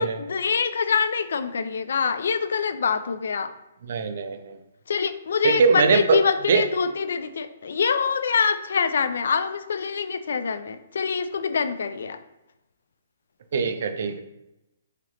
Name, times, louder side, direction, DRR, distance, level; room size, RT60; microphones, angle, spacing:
voice 1, 0.0-3.5 4.9-12.2, left 6 dB, 70° left, 11 dB, 0.3 m, -25 dB
voice 2, 3.9-4.5 5.4-6.2 6.5-6.6 13.5-14.2, right 5 dB, 55° right, 8 dB, 0.4 m, -21 dB
3.1 x 2.8 x 4.0 m, 0.91 s
hypercardioid pair, 165°, 0 cm